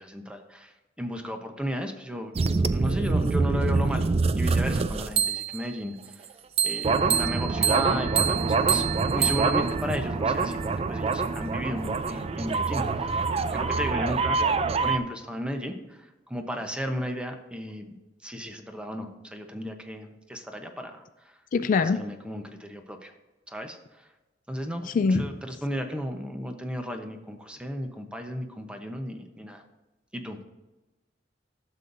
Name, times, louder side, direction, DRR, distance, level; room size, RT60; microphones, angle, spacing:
voice 1, 0.0-4.1 4.3-6.2 6.6-8.8 9.1-10.6 10.9-13.2 13.5-14.4 14.8-17.9 18.2-21.3 21.8-23.1 23.5-24.1 24.5-29.6 30.1-30.4, equal, 5° right, 5 dB, 0.8 m, -34 dB
sound 1, 2.3-5.7 6.6-15.0, right 4 dB, 35° right, 0.4 m, -25 dB
voice 2, 21.5-22.0 24.9-25.2, left 4 dB, 45° left, 12 dB, 0.3 m, -22 dB
12.0 x 7.0 x 2.6 m, 1.1 s
head